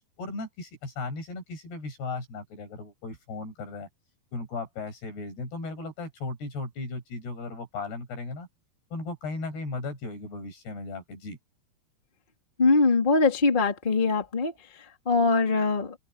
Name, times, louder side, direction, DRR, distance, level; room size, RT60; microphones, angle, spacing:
voice 1, 0.2-3.9 4.3-8.5 8.9-11.4, left 3 dB, 70° left, 9.7 m, -36 dB
voice 2, 12.6-14.5 15.0-16.0, left 3 dB, 15° left, 2.5 m, -22 dB
open air
omnidirectional pair, 4.8 m